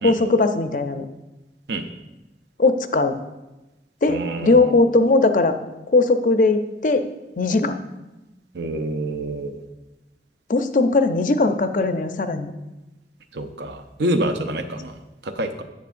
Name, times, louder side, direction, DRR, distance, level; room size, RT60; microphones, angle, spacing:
voice 1, 0.0-1.1 2.6-3.2 4.0-5.5 5.9-7.1 7.4-7.8 10.5-12.5, left 3 dB, 45° left, 8 dB, 0.5 m, -19 dB
voice 2, 4.1-4.7 8.5-9.6 13.3-15.6, right 1 dB, 75° right, 7 dB, 0.7 m, -27 dB
10.5 x 8.2 x 2.5 m, 1.0 s
head